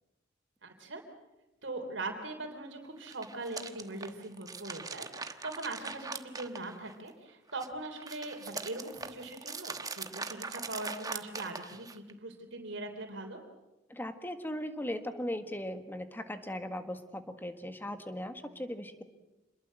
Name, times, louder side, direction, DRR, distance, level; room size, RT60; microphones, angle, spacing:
voice 1, 0.6-1.0 1.6-13.4, right 2 dB, 75° right, 3 dB, 3.5 m, -41 dB
sound 1, 3.0-7.1 7.5-12.1, right 4 dB, 20° right, 1.2 m, -42 dB
voice 2, 13.9-19.0, left 1 dB, 10° left, 8 dB, 1.6 m, -38 dB
27.5 x 21.5 x 7.6 m, 1.0 s
head